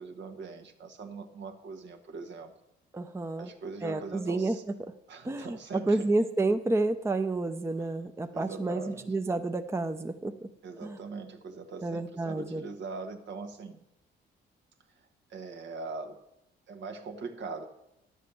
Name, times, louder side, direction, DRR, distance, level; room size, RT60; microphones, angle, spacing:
voice 1, 0.0-2.5 3.3-4.6 5.1-6.1 7.8-7.9 8.3-9.1 10.6-13.8 15.3-16.2 16.7-17.7, right 4 dB, 65° right, 6 dB, 1.5 m, -41 dB
voice 2, 2.9-3.5 3.8-4.6 5.2-10.3 10.8-11.0 11.8-12.6, right 2 dB, 15° right, 8 dB, 0.6 m, -30 dB
11.0 x 7.3 x 7.0 m, 0.86 s
cardioid pair, 90°, 20 cm